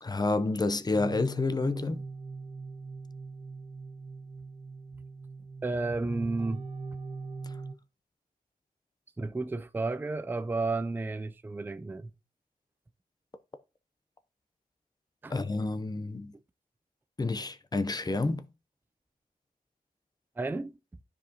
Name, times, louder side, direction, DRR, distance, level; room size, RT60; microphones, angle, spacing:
voice 1, 0.0-2.0 15.3-16.3 17.2-18.5, left 3 dB, 25° left, 0.6 m, -29 dB
sound 1, 0.9-7.7, right 4 dB, 45° right, 0.7 m, -41 dB
voice 2, 5.6-6.6 9.2-12.1 15.2-15.4 20.4-20.8, right 3 dB, 15° right, 0.3 m, -32 dB
12.5 x 4.7 x 2.8 m
wide cardioid pair, 125°, 16 cm